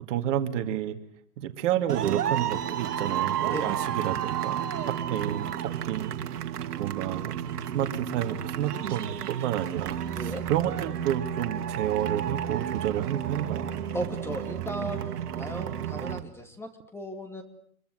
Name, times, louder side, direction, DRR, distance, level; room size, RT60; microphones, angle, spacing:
voice 1, 0.1-1.0 1.4-4.7 5.1-6.1 6.4-6.5 6.8-7.4 7.7-13.7, right 11 dB, 50° right, 7 dB, 2.3 m, -30 dB
sound 1, 1.9-16.2, right 9 dB, 80° right, 2.1 m, -32 dB
voice 2, 13.9-15.0 15.3-17.4, right 1 dB, 5° left, 5 dB, 2.7 m, -36 dB
25.5 x 23.5 x 8.0 m, 0.67 s
hypercardioid pair, 140°, 46 cm